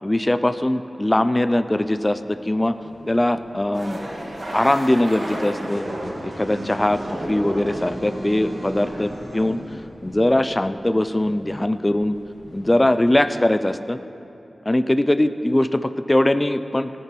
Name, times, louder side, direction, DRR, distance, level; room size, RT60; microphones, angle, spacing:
voice 1, 0.0-2.7 3.1-4.0 4.5-5.9 6.2-9.6 10.0-12.1 12.5-14.0 14.7-16.9, left 1 dB, 20° left, 12 dB, 0.5 m, -21 dB
sound 1, 1.7-13.5, equal, 55° left, 3.6 m, -48 dB
sound 2, 3.7-9.8, right 1 dB, 50° right, 2.2 m, -32 dB
16.5 x 9.9 x 4.5 m, 2.8 s
wide cardioid pair, 80°, 0 cm